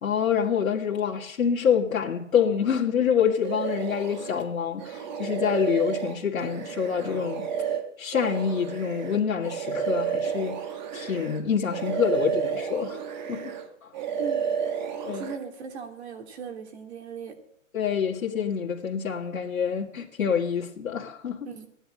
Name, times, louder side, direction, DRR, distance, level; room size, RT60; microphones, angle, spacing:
voice 1, 0.0-7.5 8.0-10.6 10.9-13.0 13.3-13.5 13.8-13.9 15.0-15.3 17.7-21.5, left 7 dB, 80° left, 2.1 m, -26 dB
sound 1, 3.4-4.4 4.8-11.4 11.7-13.7 13.9-15.4, right 7 dB, 35° right, 1.6 m, -31 dB
voice 2, 14.2-14.5 15.0-17.4 21.4-21.7, right 6 dB, 55° right, 3.1 m, -38 dB
16.0 x 10.0 x 8.7 m
hypercardioid pair, 160°, 40 cm